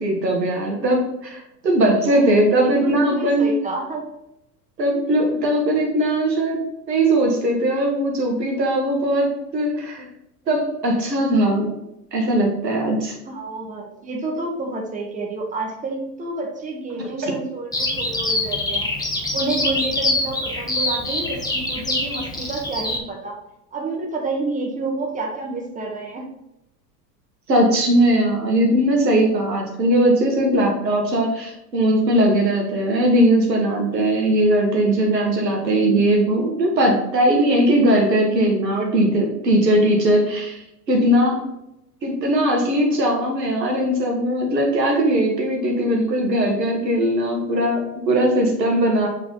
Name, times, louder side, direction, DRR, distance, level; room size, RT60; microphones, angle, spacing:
voice 1, 0.0-3.5 4.8-6.6 6.9-10.1 10.5-11.7 12.1-13.2 17.0-17.3 27.5-40.6 40.9-41.4 42.0-49.1, right 1 dB, 90° right, 0 dB, 1.8 m, -19 dB
voice 2, 2.1-4.1 13.3-18.9 19.3-23.4 23.7-26.3, right 2 dB, 15° right, 1 dB, 1.4 m, -29 dB
Bird vocalization bird call bird song, 17.7-23.0, left 2 dB, 10° left, 1.2 m, -24 dB
7.6 x 4.0 x 3.9 m, 0.87 s
hypercardioid pair, 90°, 48 cm